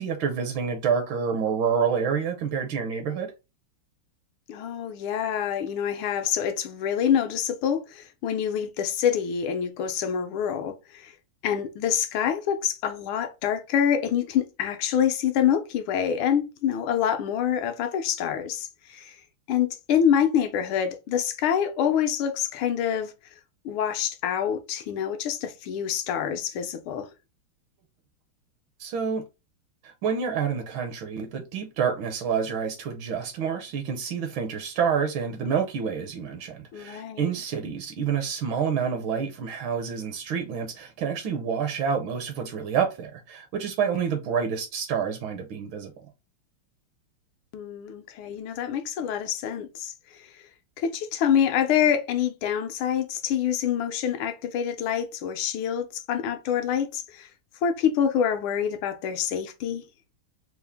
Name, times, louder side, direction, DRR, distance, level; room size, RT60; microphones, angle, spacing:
voice 1, 0.0-3.3 28.8-29.2 29.8-45.9, right 6 dB, 75° right, 1.3 m, -28 dB
voice 2, 4.5-11.1 11.4-19.2 19.5-23.1 23.6-27.1 36.7-37.3 47.5-50.4 50.8-57.3 57.6-59.8, left 8 dB, 80° left, 1.5 m, -26 dB
4.4 x 2.0 x 3.4 m
omnidirectional pair, 2.3 m